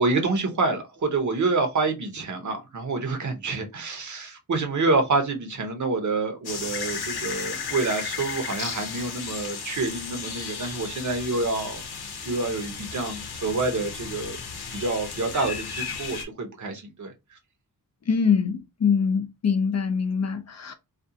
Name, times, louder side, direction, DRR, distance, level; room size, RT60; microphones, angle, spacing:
voice 1, 0.0-11.8 12.2-14.4 14.7-17.1, right 3 dB, 50° right, 0.8 m, -27 dB
sound 1, 6.4-16.2, left 6 dB, 85° left, 0.7 m, -34 dB
voice 2, 18.1-20.7, left 6 dB, 45° left, 0.5 m, -24 dB
2.5 x 2.3 x 2.6 m
wide cardioid pair, 110°, 37 cm